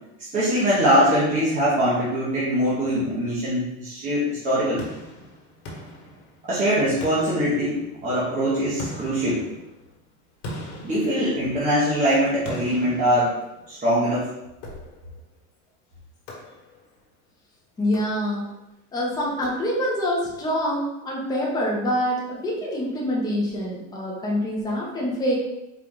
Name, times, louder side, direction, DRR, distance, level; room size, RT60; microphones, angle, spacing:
voice 1, 0.3-4.8 6.5-9.4 10.8-13.4 13.7-14.3, equal, 20° right, -9 dB, 1.0 m, -22 dB
sound 1, 4.8-6.6 7.0-8.2 8.8-11.8 12.4-13.9 14.6-15.3 16.3-17.0 17.8-18.6 19.4-20.1, left 1 dB, 50° left, 1.4 m, -40 dB
voice 2, 17.8-18.5 18.9-25.3, equal, 10° left, -4 dB, 0.8 m, -25 dB
4.5 x 2.5 x 3.8 m, 0.93 s
supercardioid pair, 155°, 37 cm